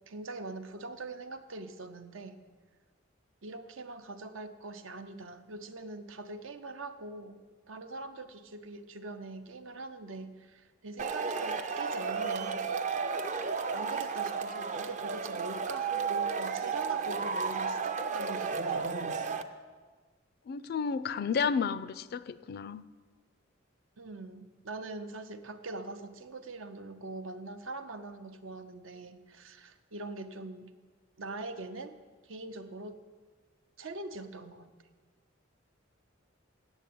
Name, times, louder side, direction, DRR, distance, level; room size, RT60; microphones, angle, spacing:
voice 1, 0.1-2.4 3.4-7.4 7.7-12.7 13.7-18.9 24.0-30.7 31.2-31.9 32.2-33.0 33.8-34.7, right 2 dB, 80° right, 9 dB, 0.7 m, -43 dB
Male speech man speaking / Shout / Clapping, 11.0-19.4, right 5 dB, 40° right, 0.5 m, -33 dB
voice 2, 20.5-22.8, left 6 dB, 50° left, 15 dB, 0.3 m, -32 dB
8.1 x 7.3 x 8.5 m, 1.4 s
head